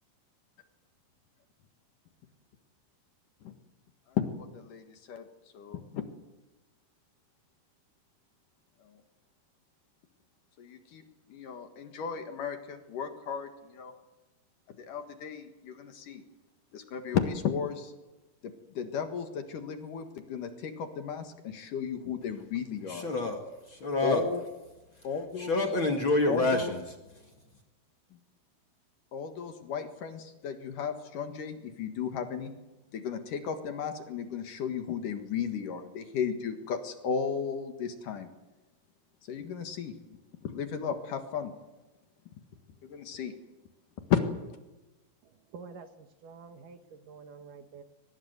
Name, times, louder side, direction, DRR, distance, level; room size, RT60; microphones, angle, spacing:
voice 1, 4.1-5.2 5.5-6.0 10.6-11.0 11.3-13.9 14.8-16.2 16.7-17.9 18.4-23.1 24.0-24.4 25.0-25.6 26.3-26.7 29.1-32.5 32.9-38.3 39.3-40.0 40.4-41.5 42.8-43.3 44.1-44.2, left 7 dB, 60° left, 3.0 m, -34 dB
voice 2, 22.9-23.4 23.7-24.2 25.4-26.8, left 2 dB, 40° left, 2.2 m, -27 dB
voice 3, 45.5-47.8, right 5 dB, 65° right, 2.6 m, -48 dB
23.0 x 20.5 x 8.1 m
omnidirectional pair, 4.5 m